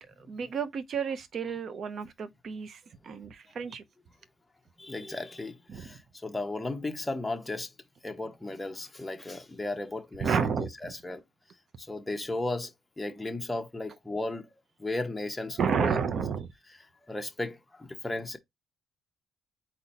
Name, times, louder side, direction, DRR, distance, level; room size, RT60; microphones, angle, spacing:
voice 1, 0.3-3.8 5.7-5.9 10.2-10.9 15.6-16.5, right 6 dB, 55° right, 0.8 m, -31 dB
voice 2, 4.8-7.7 8.0-11.2 11.8-16.0 17.1-18.4, left 2 dB, 10° left, 1.0 m, -35 dB
4.1 x 3.0 x 4.2 m
cardioid pair, 90°, 0 cm